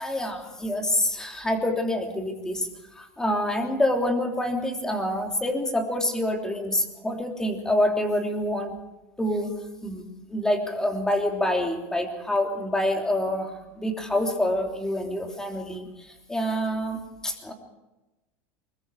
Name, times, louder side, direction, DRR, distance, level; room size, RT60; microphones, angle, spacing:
voice 1, 0.0-8.7 9.2-9.5 9.8-17.5, left 1 dB, 10° left, 3 dB, 3.3 m, -27 dB
24.5 x 21.5 x 4.9 m, 1.0 s
supercardioid pair, 140°, 7 cm